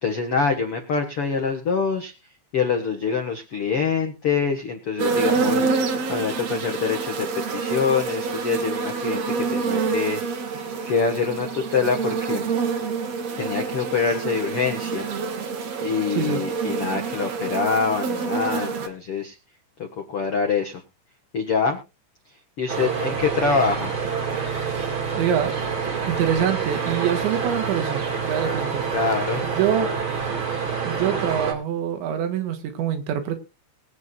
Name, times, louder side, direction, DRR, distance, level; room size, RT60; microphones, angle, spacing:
voice 1, 0.0-2.1 2.5-7.3 7.5-10.2 10.9-12.4 13.3-15.1 15.8-19.3 19.8-20.8 21.3-21.8 22.6-24.0 28.9-29.4, left 5 dB, 75° left, 1.3 m, -25 dB
sound 1, 5.0-18.9, right 5 dB, 55° right, 2.0 m, -27 dB
sound 2, 22.7-31.5, right 6 dB, 35° right, 2.3 m, -27 dB
voice 2, 25.2-25.5 26.1-28.9 29.4-29.9 30.9-33.4, right 9 dB, 75° right, 3.8 m, -25 dB
22.5 x 8.4 x 2.5 m
omnidirectional pair, 5.5 m